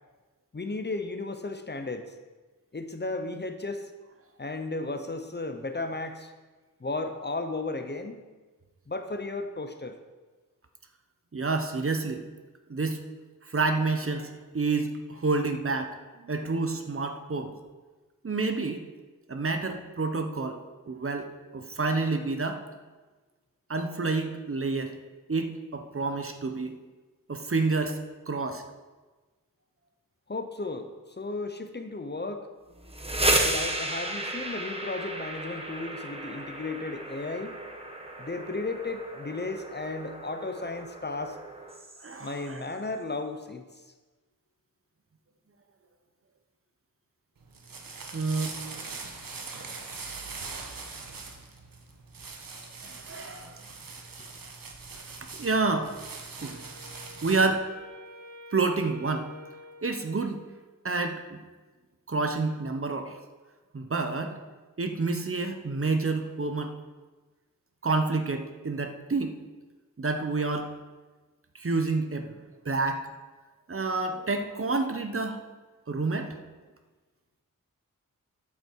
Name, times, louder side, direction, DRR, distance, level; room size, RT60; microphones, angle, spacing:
voice 1, 0.5-2.2 2.7-3.9 4.4-6.3 6.8-8.3 8.9-10.0 30.3-32.5 33.3-37.6 38.2-41.4 42.2-43.6 52.3-52.6, left 3 dB, 30° left, 7 dB, 0.9 m, -34 dB
voice 2, 11.3-12.2 12.7-13.0 13.4-17.5 18.2-18.8 19.3-22.6 23.7-25.0 25.3-26.8 27.3-28.0 28.3-28.6 33.0-33.4 42.0-42.6 48.1-48.5 52.8-53.6 55.4-55.9 56.4-56.6 57.2-57.7 58.5-59.3 59.8-60.4 60.8-61.4 62.1-63.2 63.7-64.4 64.8-66.8 67.8-69.4 70.0-70.7 71.5-72.4 72.6-73.0 73.7-75.4 75.9-76.4, right 3 dB, 40° right, 6 dB, 1.0 m, -29 dB
sound 1, 32.8-42.5, right 1 dB, 15° right, 1.3 m, -33 dB
sound 2, 47.4-57.6, right 4 dB, 85° right, 1.5 m, -42 dB
Wind instrument woodwind instrument, 56.4-60.7, left 1 dB, 65° right, 2.0 m, -49 dB
12.5 x 8.3 x 4.7 m, 1.3 s
wide cardioid pair, 110°, 33 cm